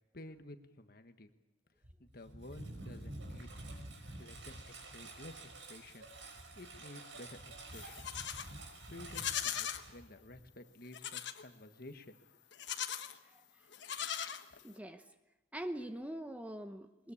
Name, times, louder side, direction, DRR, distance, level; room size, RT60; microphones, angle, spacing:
voice 1, 0.1-1.3 2.0-3.6 4.2-5.4 5.7-6.1 6.5-8.1 8.9-12.2, left 1 dB, 50° left, 8 dB, 1.4 m, -52 dB
Engine, 1.8-10.6, right 2 dB, 85° right, 5.6 m, -49 dB
Livestock farm animals working animals, 7.7-8.5 9.0-9.8 10.9-11.4 12.5-13.2 13.7-14.8, left 9 dB, 65° left, 1.2 m, -39 dB
voice 2, 14.6-15.0 15.5-17.1, right 1 dB, 5° right, 8 dB, 0.9 m, -43 dB
22.5 x 20.5 x 8.5 m, 0.99 s
head